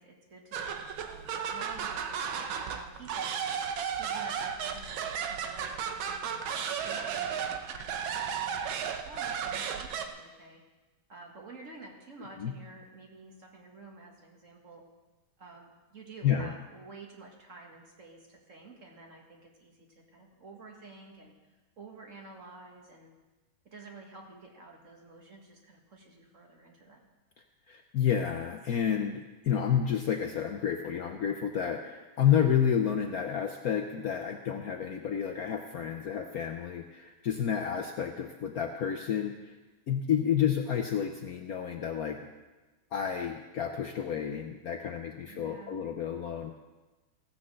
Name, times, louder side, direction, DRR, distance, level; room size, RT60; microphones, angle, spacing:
voice 1, 0.0-3.5 4.0-6.4 6.8-10.6 11.1-14.8 15.4-21.3 21.8-23.1 23.7-27.1 45.2-45.8, right 3 dB, 40° right, 0 dB, 1.9 m, -50 dB
sound 1, 0.5-10.1, right 7 dB, 85° right, 1.6 m, -34 dB
voice 2, 27.7-39.6 39.9-42.2 42.9-46.5, left 8 dB, 65° left, 4 dB, 1.0 m, -30 dB
16.0 x 6.1 x 7.6 m, 1.2 s
omnidirectional pair, 2.1 m